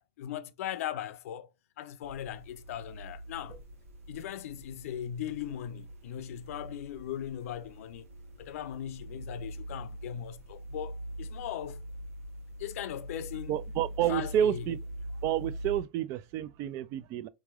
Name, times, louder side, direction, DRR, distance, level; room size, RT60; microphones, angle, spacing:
voice 1, 0.0-1.5 1.8-3.6 4.1-8.1 8.4-11.8 12.6-13.5 14.1-14.6, left 10 dB, 75° left, 0.5 m, -39 dB
sound 1, 2.0-15.8, equal, 85° right, 1.7 m, -43 dB
voice 2, 13.5-14.8 15.2-17.3, right 11 dB, 40° right, 0.4 m, -30 dB
3.6 x 3.1 x 2.3 m
supercardioid pair, 135°, 8 cm